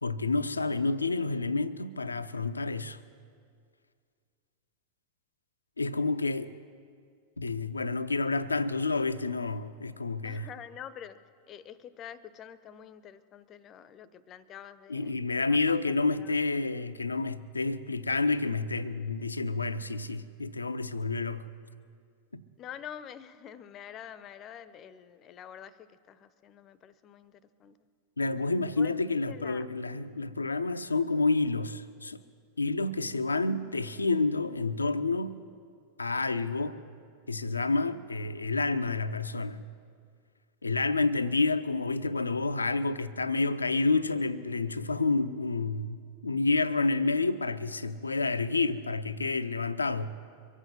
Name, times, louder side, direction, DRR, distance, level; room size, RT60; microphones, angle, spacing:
voice 1, 0.0-3.0 5.8-6.5 7.4-10.5 14.9-21.5 22.3-22.4 28.2-32.2 32.6-35.3 36.0-36.8 37.3-39.7 40.6-50.2, left 3 dB, 80° left, 0.5 m, -29 dB
voice 2, 10.2-11.2 11.5-16.4 22.6-27.8 28.8-29.7, left 9 dB, 30° left, 0.7 m, -47 dB
23.5 x 8.1 x 7.2 m
figure-of-eight pair, 90°, 0 cm